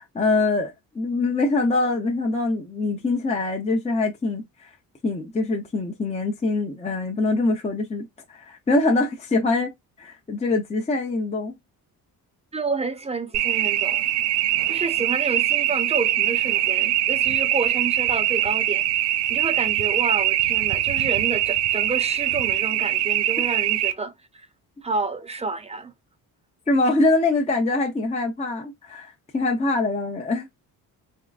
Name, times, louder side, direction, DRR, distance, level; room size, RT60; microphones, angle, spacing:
voice 1, 0.0-4.7 5.0-9.7 10.0-11.6 26.7-30.5, left 2 dB, 15° left, 0.7 m, -24 dB
voice 2, 12.5-14.1 14.7-18.8 19.3-24.5 24.8-25.9, right 4 dB, 15° right, 0.5 m, -29 dB
sound 1, 13.3-23.9, right 13 dB, 90° right, 0.5 m, -22 dB
3.6 x 3.1 x 2.4 m
cardioid pair, 105°, 38 cm